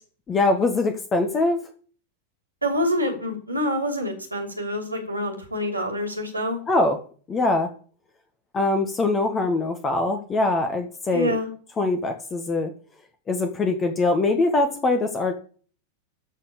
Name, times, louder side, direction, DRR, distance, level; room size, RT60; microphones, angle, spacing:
voice 1, 0.3-1.6 6.7-7.0 7.3-7.7 8.5-11.3 11.8-12.7 13.3-15.3, left 2 dB, 20° left, 7 dB, 1.5 m, -22 dB
voice 2, 2.6-6.6 11.1-11.5, equal, 85° right, 3 dB, 3.2 m, -26 dB
13.5 x 4.5 x 8.5 m, 0.43 s
figure-of-eight pair, 90°, 0 cm